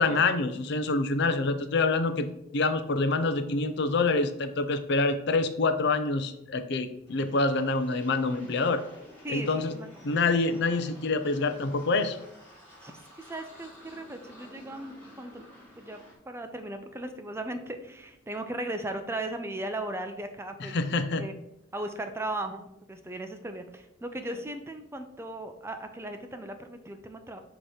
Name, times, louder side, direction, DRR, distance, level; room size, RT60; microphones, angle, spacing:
voice 1, 0.0-2.3 2.5-8.8 9.3-9.7 10.0-12.2 20.6-21.2, left 3 dB, 60° left, 9 dB, 0.5 m, -26 dB
sound 1, 7.1-16.1, equal, 10° left, 2.1 m, -51 dB
voice 2, 9.2-9.9 12.8-13.0 13.3-15.5 15.8-16.0 16.3-20.8 21.2-21.3 21.7-27.4, right 1 dB, 15° right, 7 dB, 0.5 m, -37 dB
6.6 x 3.0 x 4.9 m, 0.79 s
head